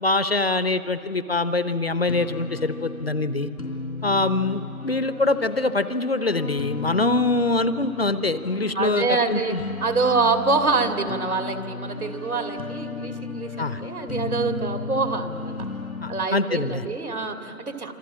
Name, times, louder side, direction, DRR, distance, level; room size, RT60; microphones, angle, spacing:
voice 1, 0.0-3.5 4.0-9.6 13.6-13.8 16.0-16.8, left 2 dB, 45° left, 13 dB, 0.8 m, -24 dB
sound 1, 2.1-16.3, left 3 dB, 90° left, 3.9 m, -35 dB
voice 2, 8.7-15.7 16.1-17.9, right 3 dB, 80° right, 5 dB, 2.7 m, -26 dB
27.0 x 26.5 x 7.5 m, 2.7 s
figure-of-eight pair, 170°, 43 cm